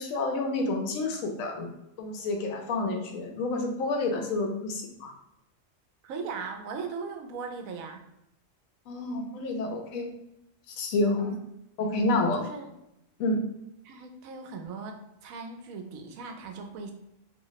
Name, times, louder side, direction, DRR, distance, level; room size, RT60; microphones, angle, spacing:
voice 1, 0.0-1.7 2.0-5.1 8.9-10.1 10.7-11.4 11.8-12.5 13.2-13.4, left 2 dB, 80° left, 3 dB, 1.0 m, -29 dB
voice 2, 6.0-8.1 11.2-11.4 12.4-12.7 13.8-16.9, right 5 dB, 90° right, 4 dB, 1.0 m, -38 dB
2.8 x 2.0 x 3.9 m, 0.84 s
omnidirectional pair, 1.4 m